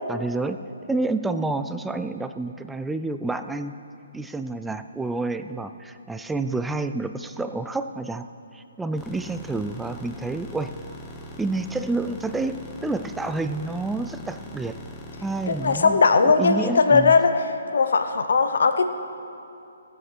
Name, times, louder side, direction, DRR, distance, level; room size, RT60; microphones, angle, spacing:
voice 1, 0.1-0.6 0.9-3.7 4.1-8.3 8.5-10.7 11.4-14.8 15.2-17.1, right 3 dB, 5° right, 9 dB, 0.3 m, -29 dB
sound 1, 9.0-15.8, left 1 dB, 15° left, 1.1 m, -41 dB
voice 2, 15.5-17.3 17.7-18.8, left 4 dB, 70° left, 8 dB, 0.9 m, -19 dB
16.0 x 8.0 x 6.0 m, 2.7 s
hypercardioid pair, 155°, 0 cm